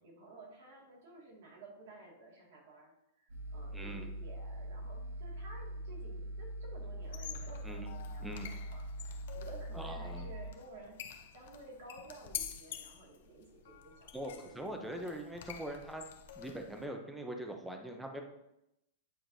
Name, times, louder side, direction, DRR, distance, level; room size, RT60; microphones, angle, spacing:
voice 1, 0.0-3.2 3.5-8.3 8.7-11.1 11.3-14.9, right 2 dB, 60° right, -1 dB, 1.9 m, -53 dB
sound 1, 3.3-10.5, right 1 dB, 85° right, 1.5 m, -42 dB
voice 2, 3.7-4.1 7.6-7.9 8.2-8.5 9.7-10.3 14.1-16.1 16.4-18.2, right 1 dB, 5° right, 3 dB, 0.6 m, -42 dB
sound 2, 7.0-16.9, left 9 dB, 60° left, 0.7 m, -48 dB
9.0 x 4.5 x 2.6 m, 0.85 s
supercardioid pair, 170°, 0 cm